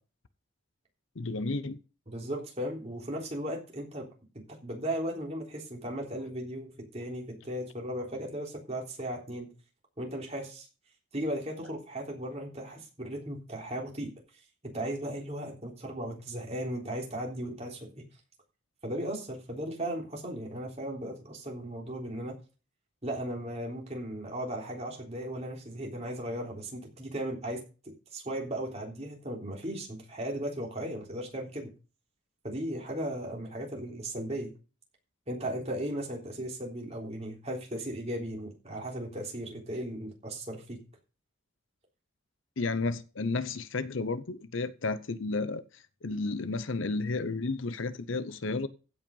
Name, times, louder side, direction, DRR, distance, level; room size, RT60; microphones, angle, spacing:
voice 1, 1.2-1.8 42.6-45.6 46.0-48.7, left 3 dB, 65° left, 0.7 m, -32 dB
voice 2, 2.1-4.1 4.3-9.5 10.0-10.7 11.1-14.1 14.7-18.1 18.8-22.3 23.0-31.7 32.4-34.5 35.3-40.8, right 1 dB, 30° right, 3.6 m, -36 dB
15.5 x 5.7 x 5.4 m
head